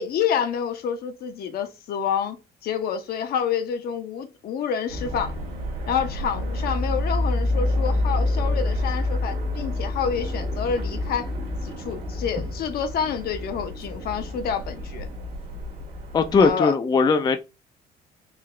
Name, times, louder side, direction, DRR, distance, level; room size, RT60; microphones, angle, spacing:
voice 1, 0.0-2.4 2.6-5.3 5.9-11.3 11.6-15.1 16.4-16.8, left 7 dB, 65° left, 0.8 m, -28 dB
sound 1, 4.9-16.5, left 2 dB, 65° right, 1.3 m, -28 dB
voice 2, 16.1-17.4, left 4 dB, 25° left, 0.4 m, -19 dB
3.8 x 2.8 x 3.2 m
cardioid pair, 110°, 17 cm